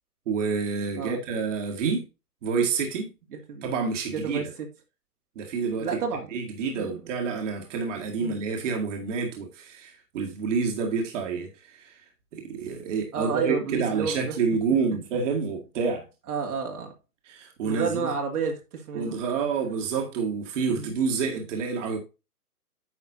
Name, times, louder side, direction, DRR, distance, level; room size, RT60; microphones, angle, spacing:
voice 1, 0.3-2.0 2.4-3.1 3.6-4.4 5.4-6.0 6.3-12.0 12.3-16.0 17.3-18.1 18.9-22.0, right 5 dB, 50° right, 2.0 m, -28 dB
voice 2, 3.3-3.7 4.1-4.5 5.8-6.3 6.8-6.9 8.2-8.4 13.1-14.4 16.3-16.9 17.6-19.1 20.7-20.9, right 5 dB, 70° right, 2.2 m, -31 dB
9.6 x 5.8 x 2.6 m
hypercardioid pair, 145°, 46 cm